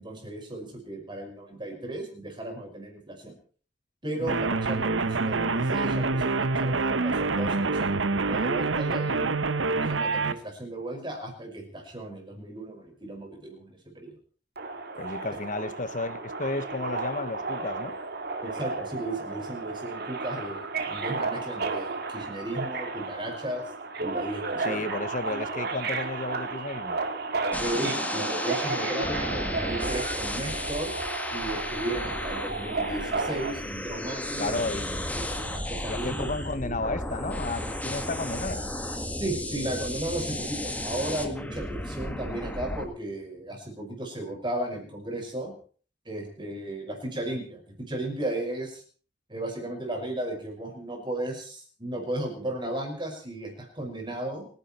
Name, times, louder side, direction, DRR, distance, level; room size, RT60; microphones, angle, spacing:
voice 1, 0.0-3.4 4.0-9.3 9.7-14.1 15.6-15.7 18.4-23.7 24.0-25.1 25.5-25.6 27.6-31.0 31.3-34.6 35.1-36.3 36.6-36.8 39.2-45.5 46.1-48.8 49.3-54.5, right 1 dB, 25° right, 5.6 m, -35 dB
sound 1, 4.3-10.3, right 3 dB, 85° right, 1.0 m, -26 dB
Subway metro underground, 14.6-33.5, right 3 dB, 55° right, 2.1 m, -33 dB
voice 2, 15.0-18.0 24.6-27.0 34.4-35.0 35.9-38.7, left 3 dB, 45° left, 1.2 m, -33 dB
sound 2, 27.5-42.8, left 1 dB, 10° left, 1.8 m, -33 dB
30.0 x 10.5 x 4.4 m
head